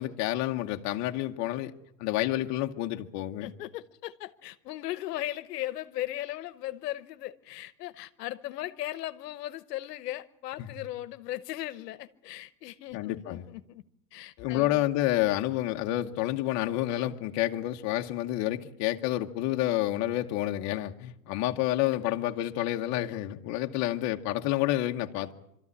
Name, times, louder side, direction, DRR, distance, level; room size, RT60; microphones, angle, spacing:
voice 1, 0.0-1.7 2.0-3.5 10.6-10.7 12.9-13.4 14.4-25.3, left 14 dB, 35° left, 1.0 m, -29 dB
voice 2, 3.4-13.8 14.1-14.8, left 15 dB, 75° left, 1.1 m, -37 dB
23.5 x 13.5 x 9.7 m
supercardioid pair, 145°, 49 cm